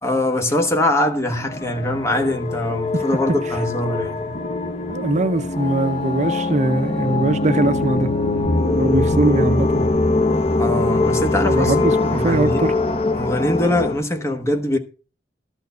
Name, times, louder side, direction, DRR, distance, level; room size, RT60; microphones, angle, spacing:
voice 1, 0.0-4.4 10.6-12.8 13.1-14.8, left 1 dB, 15° left, 1.3 m, -22 dB
sound 1, 1.3-14.1, equal, 60° left, 1.5 m, -41 dB
sound 2, 1.4-13.9, left 2 dB, 35° left, 0.8 m, -22 dB
voice 2, 4.9-8.1 8.8-9.9 11.4-12.7, right 2 dB, 40° right, 0.7 m, -21 dB
13.0 x 4.5 x 8.0 m
head